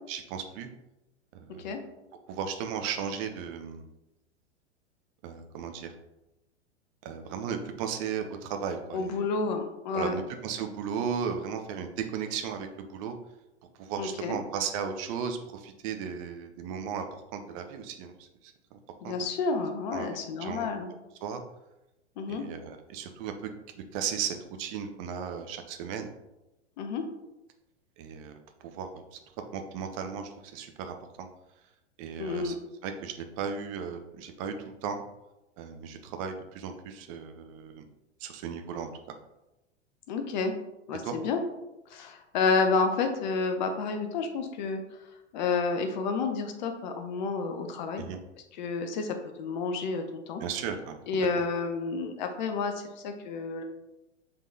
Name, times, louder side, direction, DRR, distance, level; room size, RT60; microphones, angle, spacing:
voice 1, 0.1-0.7 1.4-1.8 2.3-3.9 5.2-5.9 7.0-9.3 9.9-13.1 13.8-17.0 17.3-18.1 18.4-18.8 19.0-19.1 19.9-20.1 20.4-20.7 21.2-21.4 22.3-23.3 23.9-26.1 28.0-29.2 29.5-31.3 32.0-32.5 32.8-34.5 34.8-35.0 35.6-37.9 38.2-38.9 41.0-41.2 48.0-48.2 50.4-51.0 51.4-51.5, right 7 dB, 30° right, 6 dB, 0.5 m, -35 dB
voice 2, 8.9-10.2 14.0-14.4 19.0-20.9 22.2-22.4 26.8-27.0 32.2-32.5 40.1-40.5 40.9-41.4 41.9-44.8 45.3-48.0 48.6-50.4 51.1-53.6, left 4 dB, 40° left, 6 dB, 0.7 m, -30 dB
5.5 x 3.5 x 2.7 m, 0.94 s
figure-of-eight pair, 100°, 35 cm